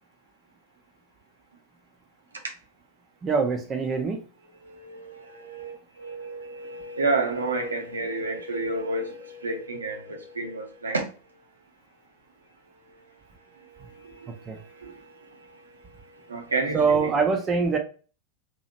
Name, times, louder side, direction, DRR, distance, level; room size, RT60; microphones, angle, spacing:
voice 1, 3.2-4.2 14.5-14.6 16.7-17.8, right 5 dB, 25° right, 0.5 m, -23 dB
voice 2, 4.5-5.7 6.0-11.0 13.8-15.6 16.2-17.1, right 3 dB, 75° right, 0.7 m, -31 dB
2.8 x 2.4 x 2.8 m
figure-of-eight pair, 90°, 0 cm